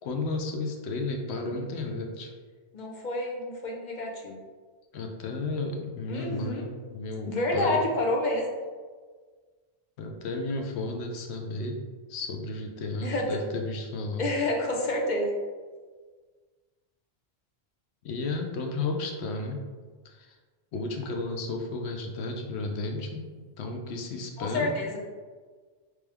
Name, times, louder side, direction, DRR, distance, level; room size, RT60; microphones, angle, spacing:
voice 1, 0.0-2.3 4.9-7.8 10.0-11.8 12.1-14.3 18.0-19.6 20.0-20.4 20.7-23.2 23.6-24.7, left 2 dB, 90° left, 3 dB, 0.9 m, -33 dB
voice 2, 1.4-1.9 2.7-4.4 6.1-6.7 7.3-8.5 13.0-13.4 14.2-15.3 24.4-25.0, left 1 dB, 50° left, -1 dB, 0.7 m, -29 dB
3.4 x 3.1 x 3.4 m, 1.5 s
omnidirectional pair, 1.1 m